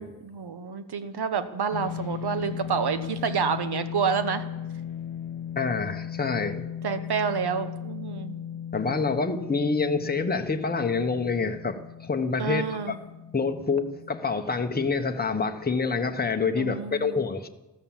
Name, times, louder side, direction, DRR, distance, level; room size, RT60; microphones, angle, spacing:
voice 1, 0.0-4.4 6.8-8.4 12.4-13.0 16.6-17.1, right 6 dB, 55° right, 11 dB, 1.3 m, -29 dB
sound 1, 1.7-16.1, left 9 dB, 90° left, 0.6 m, -37 dB
voice 2, 5.6-6.7 8.7-13.0 13.3-17.5, left 4 dB, 20° left, 6 dB, 1.0 m, -27 dB
14.0 x 13.5 x 7.4 m, 1.0 s
wide cardioid pair, 130°, 45 cm